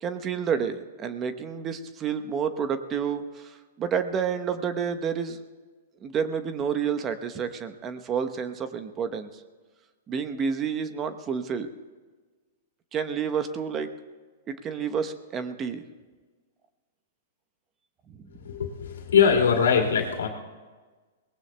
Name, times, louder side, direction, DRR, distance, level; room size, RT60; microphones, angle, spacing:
voice 1, 0.0-5.4 6.0-9.3 10.1-11.7 12.9-13.9 14.5-15.8 18.2-18.3, right 7 dB, 25° right, 9 dB, 0.9 m, -29 dB
voice 2, 18.4-20.3, left 6 dB, 80° left, 2 dB, 2.3 m, -22 dB
22.5 x 19.0 x 2.2 m, 1.4 s
hypercardioid pair, 120°, 0 cm